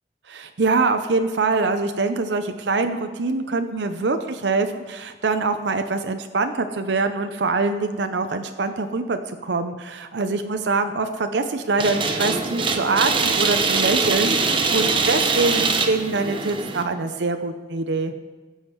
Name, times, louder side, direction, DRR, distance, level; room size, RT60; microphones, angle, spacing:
voice 1, 0.3-18.1, right 3 dB, 90° right, 7 dB, 0.6 m, -24 dB
sound 1, 11.8-16.8, right 4 dB, 30° right, 0.9 m, -22 dB
15.0 x 7.2 x 4.6 m, 1.3 s
head